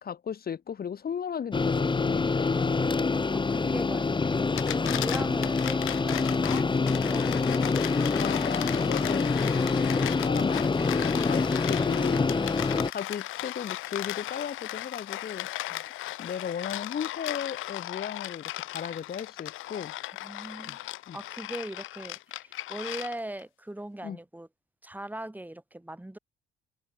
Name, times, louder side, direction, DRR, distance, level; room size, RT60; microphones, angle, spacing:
voice 1, 0.0-3.0 4.7-4.8 7.3-7.4 8.1-9.3 9.8-12.3 12.9-15.5 16.2-19.9 20.6-20.8 21.1-21.2 24.0-24.2, left 7 dB, 50° left, 2.6 m, -36 dB
sound 1, 1.5-12.9, left 4 dB, 25° left, 1.5 m, -26 dB
voice 2, 2.9-7.3 15.7-15.8 20.2-20.8 21.1-24.5 24.8-26.2, right 1 dB, 10° right, 7.8 m, -40 dB
sound 2, 4.4-23.4, left 16 dB, 90° left, 1.3 m, -36 dB
cardioid pair, 90°, 20 cm